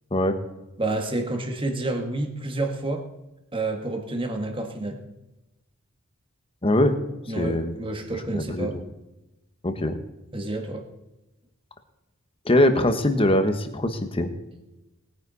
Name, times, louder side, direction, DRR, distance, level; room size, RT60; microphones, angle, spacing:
voice 1, 0.8-3.0 3.5-5.0 7.3-8.8 10.3-10.8, right 2 dB, 25° right, 4 dB, 1.6 m, -29 dB
voice 2, 6.6-6.9 7.4-7.7 8.3-8.8 9.6-10.0 12.4-14.3, left 1 dB, 25° left, 8 dB, 1.2 m, -22 dB
20.0 x 9.7 x 4.1 m, 1.0 s
head